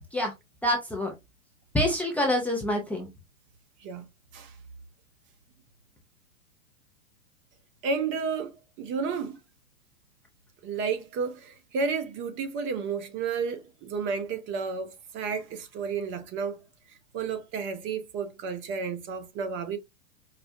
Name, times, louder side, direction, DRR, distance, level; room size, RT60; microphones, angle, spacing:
voice 1, 0.6-1.1 1.7-3.1, left 1 dB, 5° left, 0.6 m, -26 dB
voice 2, 7.8-9.4 10.6-16.6 17.1-19.8, right 5 dB, 30° right, 0.8 m, -32 dB
4.9 x 2.2 x 2.7 m
hypercardioid pair, 115°, 41 cm